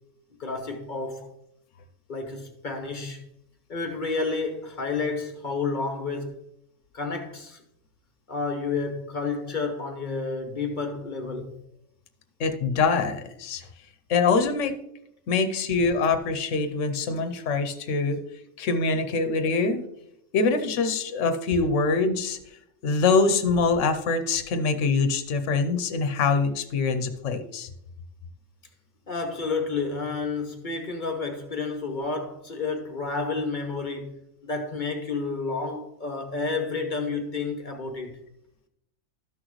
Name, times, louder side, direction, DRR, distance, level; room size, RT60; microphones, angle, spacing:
voice 1, 0.4-1.3 2.1-3.2 3.7-6.3 6.9-7.6 8.3-11.6 29.1-34.1 34.4-38.2, left 4 dB, 40° left, 1.0 m, -30 dB
voice 2, 12.4-13.6 14.1-14.7 15.3-18.2 18.6-19.8 20.3-22.4 22.8-27.7, left 4 dB, 75° left, 1.1 m, -24 dB
12.5 x 6.3 x 3.1 m
omnidirectional pair, 1.3 m